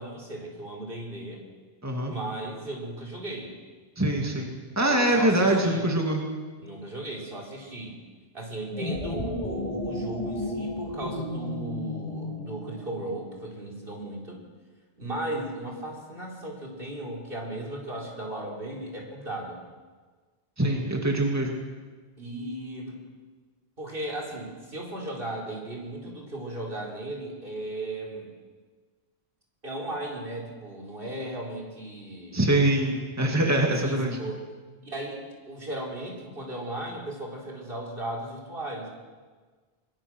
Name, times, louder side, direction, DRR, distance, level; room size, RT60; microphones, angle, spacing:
voice 1, 0.0-1.4 2.0-3.5 4.8-5.9 6.6-8.0 8.3-14.4 15.0-19.6 22.2-23.1 23.8-28.3 29.6-32.4 33.5-34.4 34.8-38.9, right 1 dB, 60° right, -1 dB, 4.5 m, -36 dB
voice 2, 1.8-2.1 4.0-6.2 20.6-21.6 32.3-34.2, right 1 dB, 15° right, 1 dB, 2.3 m, -24 dB
sound 1, 8.6-13.2, left 1 dB, 35° left, 3.3 m, -33 dB
22.5 x 22.0 x 6.3 m, 1.4 s
omnidirectional pair, 1.0 m